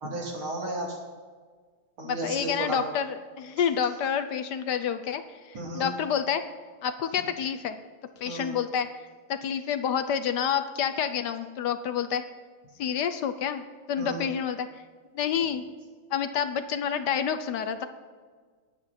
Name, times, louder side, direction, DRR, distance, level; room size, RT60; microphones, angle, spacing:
voice 1, 0.0-0.9 2.0-2.8 5.5-5.9 8.3-8.6 14.0-14.3, right 2 dB, 80° right, -2 dB, 3.8 m, -33 dB
voice 2, 2.0-5.2 5.5-6.4 6.8-7.8 8.2-8.9 9.3-12.2 12.8-13.6 13.9-14.7 15.1-15.6 16.1-17.9, left 8 dB, 65° left, 9 dB, 1.2 m, -28 dB
22.0 x 8.8 x 4.4 m, 1.6 s
omnidirectional pair, 2.3 m